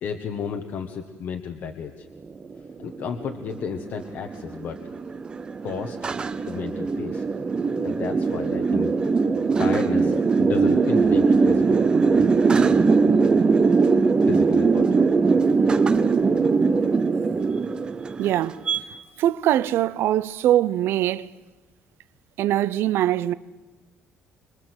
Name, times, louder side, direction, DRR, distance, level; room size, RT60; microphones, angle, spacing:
voice 1, 0.0-2.1 2.8-4.8 5.6-6.0 6.5-7.2 7.8-9.0 9.6-11.8 14.3-14.9, left 6 dB, 50° left, 1.3 m, -32 dB
sound 1, 2.4-18.8, right 4 dB, 20° right, 0.7 m, -21 dB
voice 2, 18.2-18.6 19.2-21.3 22.4-23.3, right 12 dB, 60° right, 0.7 m, -22 dB
26.0 x 22.5 x 8.0 m
cardioid pair, 180°, 4 cm